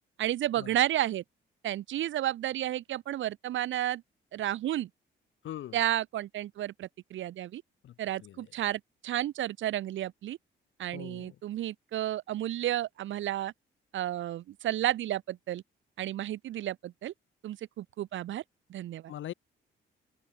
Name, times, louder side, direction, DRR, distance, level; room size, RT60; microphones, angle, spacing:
voice 1, 0.2-1.2 1.6-4.0 4.3-4.9 5.7-7.6 8.0-10.4 10.8-13.5 13.9-15.6 16.0-17.1 17.4-18.4 18.7-19.1, right 13 dB, 75° right, 1.7 m, -32 dB
voice 2, 5.4-5.8 7.8-8.4 10.9-11.4 19.1-19.3, left 12 dB, 75° left, 3.9 m, -42 dB
open air
cardioid pair, 90°, 20 cm